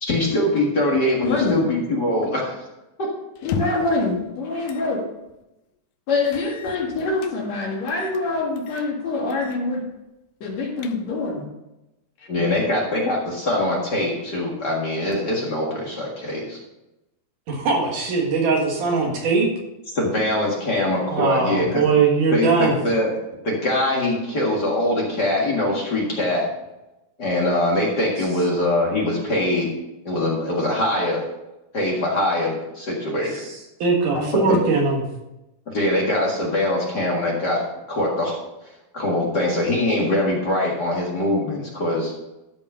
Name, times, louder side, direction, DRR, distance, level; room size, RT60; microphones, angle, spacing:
voice 1, 0.0-2.5 12.3-16.6 19.9-21.9 22.3-23.1 23.4-26.5 27.2-29.7 30.0-31.2 31.7-33.4 34.3-34.6 35.7-38.4 38.9-42.1, left 1 dB, 40° left, -3 dB, 1.9 m, -23 dB
voice 2, 1.2-1.7 3.4-5.0 6.1-9.9 10.4-11.5 12.2-12.6 34.1-34.6, left 3 dB, 60° left, -1 dB, 3.0 m, -25 dB
sound 1, 3.4-4.0 4.7-4.9 5.3-5.4 6.2-7.4 7.9-8.2 8.6-8.9 9.3-9.6 9.9-10.0 10.5-11.3, left 8 dB, 75° left, 1.9 m, -34 dB
voice 3, 17.5-19.5 21.1-22.8 33.3-35.0, right 4 dB, 80° right, 0 dB, 3.3 m, -21 dB
12.5 x 5.2 x 5.5 m, 0.95 s
omnidirectional pair, 3.6 m